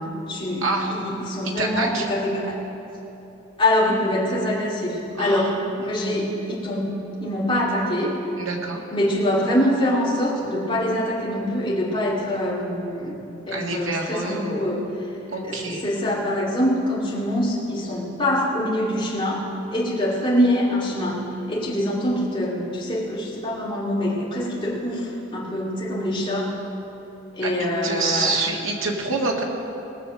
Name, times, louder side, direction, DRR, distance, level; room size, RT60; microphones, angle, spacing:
voice 1, 0.0-2.6 3.6-8.2 8.9-13.2 13.5-14.9 15.4-19.5 19.7-26.5 27.4-28.4, left 1 dB, 25° left, -7 dB, 2.2 m, -24 dB
voice 2, 0.6-0.9 1.4-2.1 5.2-5.5 8.4-8.8 13.5-14.7 15.3-15.8 27.4-27.5 27.8-29.4, right 3 dB, 85° right, 0 dB, 1.8 m, -26 dB
20.0 x 7.1 x 6.3 m, 3.0 s
head